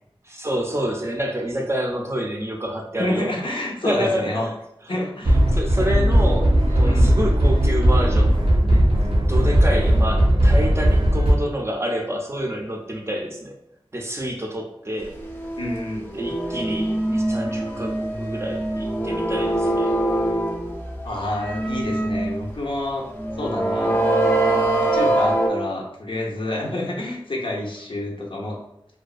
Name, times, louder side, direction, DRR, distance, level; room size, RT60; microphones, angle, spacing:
voice 1, 0.2-3.4 3.8-4.5 5.5-8.4 8.7-8.9 9.3-13.5 13.9-15.2 16.1-19.9, equal, 30° right, 1 dB, 0.5 m, -28 dB
voice 2, 3.0-4.5 4.9-5.4 6.8-7.2 15.6-16.1 21.0-23.1 23.4-24.0 24.9-28.6, left 1 dB, 65° left, 0 dB, 0.5 m, -28 dB
sound 1, 5.3-11.3, equal, 85° right, 0.6 m, -17 dB
sound 2, 15.1-22.5 23.1-25.5, right 1 dB, 20° left, 0.5 m, -23 dB
2.6 x 2.2 x 2.3 m, 0.81 s
wide cardioid pair, 45°, 9 cm